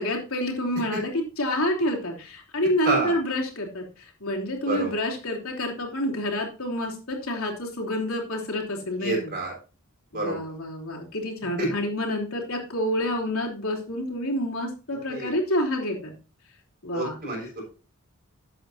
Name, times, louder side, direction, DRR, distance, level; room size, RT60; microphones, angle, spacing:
voice 1, 0.0-9.3 10.1-16.1 16.8-17.2, left 1 dB, 85° left, -1 dB, 3.4 m, -28 dB
voice 2, 9.0-9.5 10.1-10.4 11.6-11.7 15.1-15.3 16.9-17.6, right 2 dB, 45° right, -2 dB, 6.5 m, -27 dB
13.0 x 8.4 x 2.8 m, 0.33 s
head